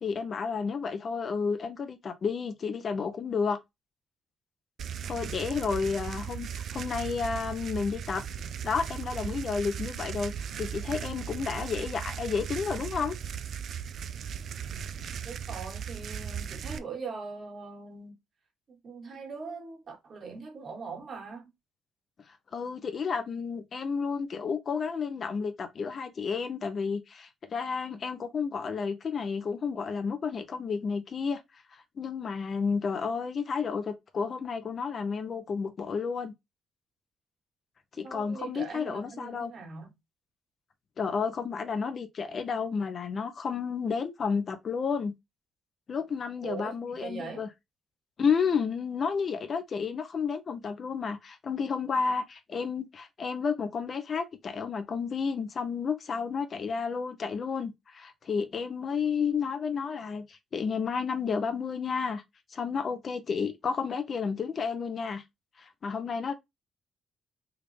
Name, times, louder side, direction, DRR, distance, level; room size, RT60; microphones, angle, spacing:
voice 1, 0.0-3.6 5.0-8.2 8.6-10.3 10.6-13.2 22.5-31.4 31.7-36.3 38.0-39.5 41.0-45.1 45.9-47.5 48.2-62.2 62.5-65.2 65.6-66.3, left 5 dB, 50° left, 0.6 m, -31 dB
sound 1, 4.8-16.8, right 8 dB, 65° right, 0.3 m, -37 dB
voice 2, 15.2-18.2 18.7-21.5 38.0-39.9 46.4-47.5, right 5 dB, 50° right, 1.6 m, -41 dB
3.5 x 2.4 x 3.2 m
cardioid pair, 90°, 0 cm